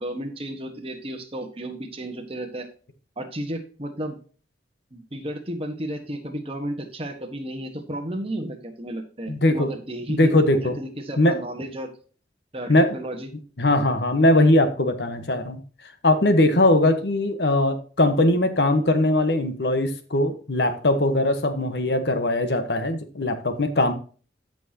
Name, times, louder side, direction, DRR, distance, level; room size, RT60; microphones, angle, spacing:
voice 1, 0.0-2.7 3.2-4.2 4.9-11.9 12.5-13.3, right 1 dB, 30° right, 5 dB, 1.5 m, -33 dB
voice 2, 9.3-9.7 10.1-10.7 11.2-11.4 12.7-12.9 13.6-15.6 16.0-23.9, left 1 dB, 70° left, 8 dB, 1.3 m, -20 dB
14.0 x 6.0 x 2.9 m, 0.39 s
head